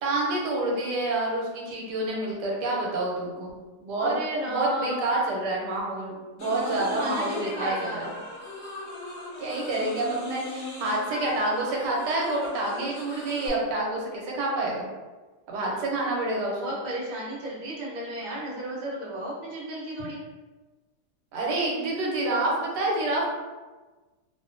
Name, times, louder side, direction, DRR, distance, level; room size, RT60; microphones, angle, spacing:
voice 1, 0.0-3.5 3.8-4.2 4.4-8.1 9.4-14.9 15.5-16.8 21.3-23.3, right 2 dB, 90° right, -2 dB, 1.3 m, -28 dB
voice 2, 4.0-5.1 6.6-8.2 15.6-15.8 16.6-20.2, right 1 dB, 55° right, -6 dB, 0.4 m, -34 dB
sound 1, 6.4-13.5, left 2 dB, 65° left, 0.7 m, -38 dB
2.6 x 2.4 x 2.5 m, 1.3 s
omnidirectional pair, 1.8 m